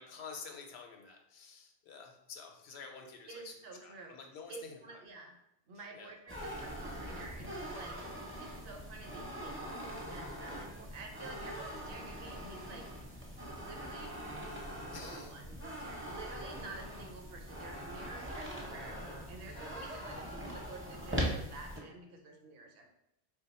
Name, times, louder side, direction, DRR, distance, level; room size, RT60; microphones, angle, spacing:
voice 1, 0.0-3.5 3.8-5.0 5.9-6.1 14.9-15.3, left 5 dB, 75° left, 3 dB, 0.8 m, -49 dB
voice 2, 3.3-4.2 4.5-5.4 5.7-8.0 8.4-12.9 13.5-14.2 14.9-22.9, right 3 dB, 65° right, 3 dB, 0.8 m, -50 dB
sound 1, 6.3-21.8, equal, 15° right, 0.4 m, -42 dB
3.3 x 2.2 x 4.1 m, 0.81 s
omnidirectional pair, 1.1 m